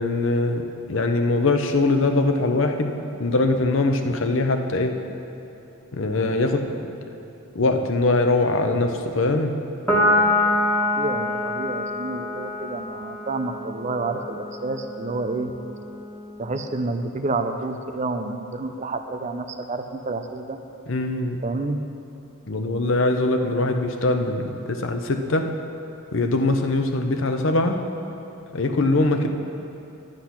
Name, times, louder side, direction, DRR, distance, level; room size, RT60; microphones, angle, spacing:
voice 1, 0.0-2.9 3.2-5.0 5.9-6.6 7.5-9.5 20.9-21.4 22.5-25.5 26.1-27.8 28.5-29.3, left 2 dB, 60° left, 5 dB, 0.8 m, -22 dB
Piano, 9.9-16.6, left 1 dB, 5° left, 1.7 m, -26 dB
voice 2, 10.8-15.5 16.4-20.6 21.4-21.8, right 3 dB, 30° right, 7 dB, 0.5 m, -29 dB
10.5 x 9.9 x 5.9 m, 2.7 s
head